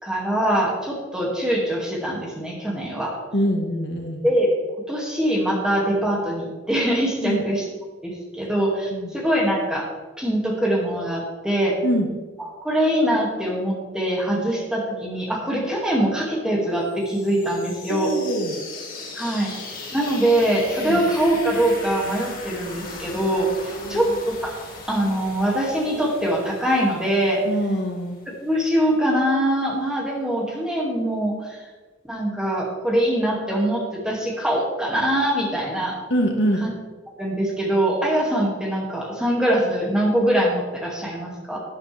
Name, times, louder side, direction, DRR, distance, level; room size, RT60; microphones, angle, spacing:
voice 1, 0.0-3.1 4.2-4.5 4.9-7.6 8.0-9.9 10.2-11.8 12.4-18.1 19.1-19.5 19.9-24.1 24.4-24.5 24.9-27.4 28.4-31.6 32.1-36.0 36.6-36.7 37.2-41.6, right 1 dB, 5° right, -3 dB, 2.2 m, -23 dB
voice 2, 3.3-4.3 7.2-7.4 8.9-9.1 11.8-12.1 17.9-18.6 20.9-21.0 23.7-24.1 27.4-28.2 36.1-36.6, equal, 60° left, 2 dB, 1.4 m, -24 dB
sound 1, 16.9-28.6, left 3 dB, 45° left, 2.0 m, -39 dB
12.0 x 10.5 x 3.4 m, 1.3 s
head